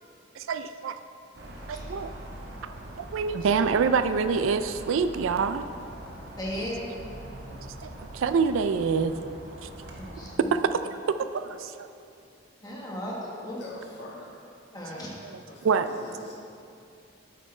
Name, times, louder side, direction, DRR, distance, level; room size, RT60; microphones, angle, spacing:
voice 1, 0.3-1.0 1.7-2.1 3.0-5.7 7.6-9.1 9.6-9.7 10.5-10.8 11.1-11.9 14.9-15.1 15.6-15.8, right 5 dB, 85° right, 11 dB, 0.4 m, -26 dB
sound 1, 1.3-10.4, right 1 dB, 55° right, 1.0 m, -42 dB
voice 2, 6.4-6.8 10.0-10.4 12.6-13.6 14.7-15.1, equal, 20° left, -4 dB, 1.3 m, -35 dB
voice 3, 13.6-14.3 15.5-16.3, left 1 dB, 60° left, -5 dB, 1.7 m, -43 dB
8.7 x 8.1 x 3.2 m, 2.6 s
head